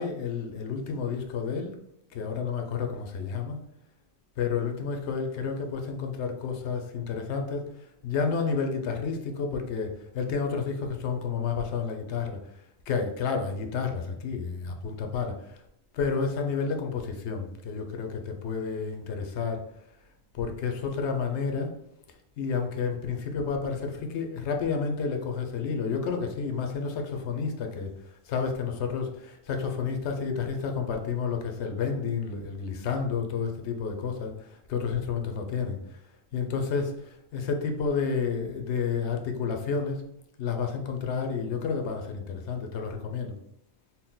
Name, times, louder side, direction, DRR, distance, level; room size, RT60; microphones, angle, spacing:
voice 1, 0.0-1.8 2.1-3.6 4.4-7.6 8.0-12.4 12.9-15.6 15.9-19.6 20.3-21.7 22.4-27.9 28.3-35.8 36.3-40.0 40.4-43.3, left 5 dB, 80° left, 4 dB, 0.9 m, -30 dB
4.1 x 2.1 x 3.8 m, 0.77 s
omnidirectional pair, 1.1 m